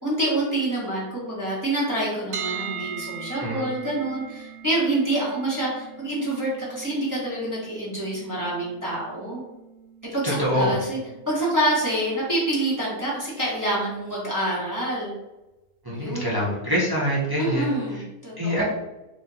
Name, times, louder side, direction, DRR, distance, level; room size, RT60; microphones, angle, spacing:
voice 1, 0.0-9.4 10.1-11.0 11.3-15.1 15.9-16.5 17.4-18.6, right 1 dB, 15° right, -7 dB, 1.0 m, -27 dB
sound 1, 2.3-14.2, right 7 dB, 85° right, 0.5 m, -41 dB
voice 2, 10.2-10.7 15.8-18.0 18.4-18.6, equal, 30° right, -5 dB, 0.4 m, -25 dB
4.0 x 3.0 x 2.7 m, 1.0 s
omnidirectional pair, 1.6 m